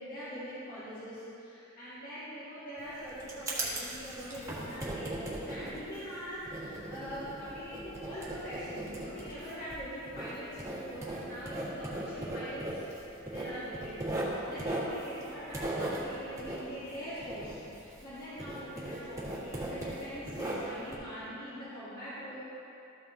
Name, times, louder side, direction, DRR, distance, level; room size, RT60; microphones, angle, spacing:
voice 1, 0.0-12.8 13.3-22.4, equal, 45° left, -12 dB, 2.0 m, -43 dB
Writing, 2.8-18.1 18.4-20.9, right 1 dB, 15° right, 1.7 m, -38 dB
13.5 x 7.1 x 2.8 m, 3.0 s
head